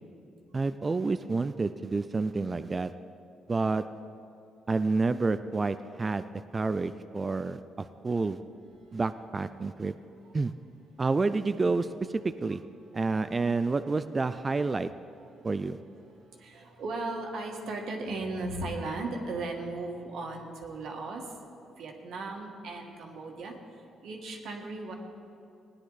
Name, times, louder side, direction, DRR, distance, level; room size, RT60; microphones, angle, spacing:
voice 1, 0.5-2.9 3.5-3.8 4.7-6.3 6.5-8.4 8.9-9.9 10.3-10.5 11.0-11.9 12.2-12.6 12.9-14.9 15.4-15.8, right 3 dB, 30° right, 11 dB, 0.4 m, -29 dB
voice 2, 16.3-21.2 21.8-23.5 24.0-24.9, right 2 dB, 75° right, 1 dB, 1.6 m, -36 dB
17.5 x 9.8 x 4.0 m, 2.7 s
cardioid pair, 90°, 0 cm